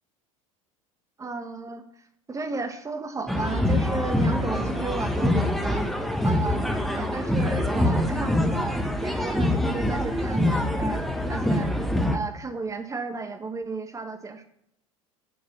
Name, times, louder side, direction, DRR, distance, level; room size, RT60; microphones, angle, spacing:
voice 1, 1.2-1.8 2.3-5.9 6.2-6.6 6.9-11.7 12.1-14.4, right 4 dB, 20° right, 8 dB, 1.5 m, -33 dB
sound 1, 3.3-12.2, left 1 dB, ahead, 1.4 m, -25 dB
9.5 x 7.1 x 7.1 m, 0.76 s
figure-of-eight pair, 75°, 18 cm